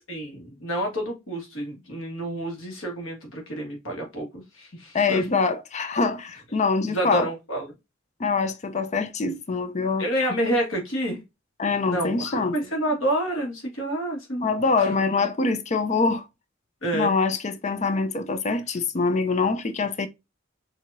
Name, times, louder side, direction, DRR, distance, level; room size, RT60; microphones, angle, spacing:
voice 1, 0.1-5.3 6.9-7.7 10.0-11.2 11.8-14.5 14.8-14.9 16.8-17.2, right 1 dB, 85° left, 1.7 m, -29 dB
voice 2, 4.9-7.3 8.2-10.1 11.6-12.6 14.4-16.2 16.9-20.1, left 4 dB, 35° left, 0.5 m, -24 dB
4.7 x 2.8 x 2.6 m
head